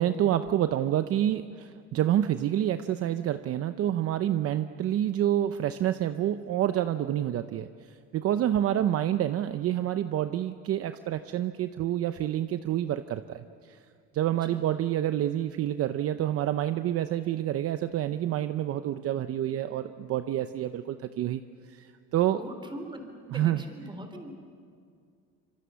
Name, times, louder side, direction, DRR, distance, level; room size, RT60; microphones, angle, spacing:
voice 1, 0.0-7.7 8.1-13.8 14.1-21.4 21.7-22.4 23.3-23.6, right 11 dB, 50° right, 10 dB, 0.8 m, -28 dB
voice 2, 22.3-23.0 23.3-24.3, right 1 dB, 15° right, 5 dB, 3.7 m, -41 dB
26.5 x 23.5 x 7.1 m, 2.2 s
cardioid pair, 110°, 29 cm